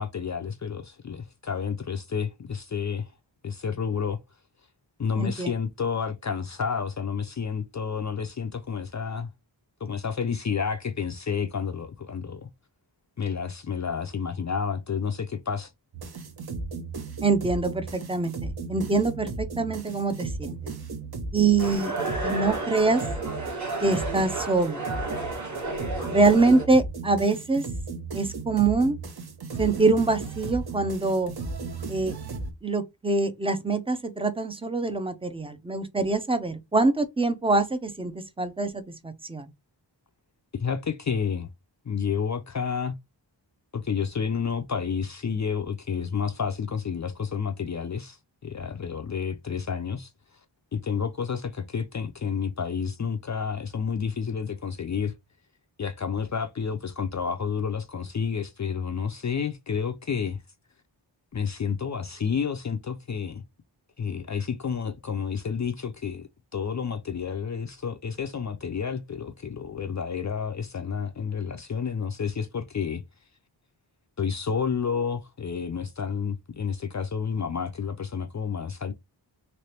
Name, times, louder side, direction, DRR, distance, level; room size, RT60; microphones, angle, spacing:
voice 1, 0.0-3.1 3.4-4.2 5.0-9.3 9.8-12.5 13.2-15.7 40.5-41.5 41.9-43.0 43.7-48.2 48.4-50.1 50.7-55.1 55.8-60.4 61.3-63.4 64.0-73.0 74.2-78.9, left 6 dB, 40° left, 0.4 m, -30 dB
voice 2, 5.2-5.5 17.2-20.6 21.3-21.9 22.2-23.1 23.8-24.8 26.1-27.6 28.1-29.0 29.6-31.3 31.9-32.1 32.6-39.5, right 3 dB, 15° right, 0.5 m, -24 dB
sound 1, 15.9-32.5, right 3 dB, 55° right, 0.9 m, -36 dB
sound 2, 21.6-26.7, right 3 dB, 40° right, 1.3 m, -32 dB
3.2 x 2.9 x 2.8 m
wide cardioid pair, 75°, 45 cm